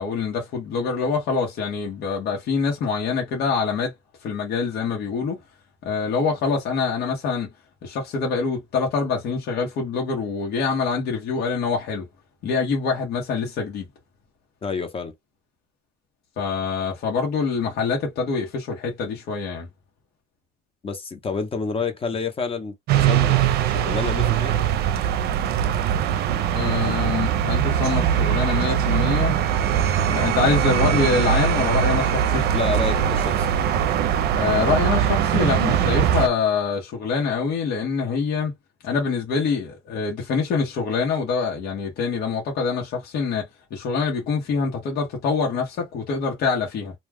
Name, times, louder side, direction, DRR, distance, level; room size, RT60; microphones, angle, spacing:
voice 1, 0.0-3.9 4.2-5.4 5.8-7.5 7.8-12.1 12.4-13.9 16.4-19.7 26.5-29.4 30.1-32.5 34.3-38.5 38.8-46.9, left 5 dB, 70° left, 1.1 m, -25 dB
voice 2, 14.6-15.1 20.8-24.6 32.5-33.5, left 4 dB, 35° left, 1.0 m, -29 dB
sound 1, 22.9-36.3, right 9 dB, 70° right, 0.5 m, -21 dB
2.4 x 2.3 x 3.4 m
cardioid pair, 110°, 17 cm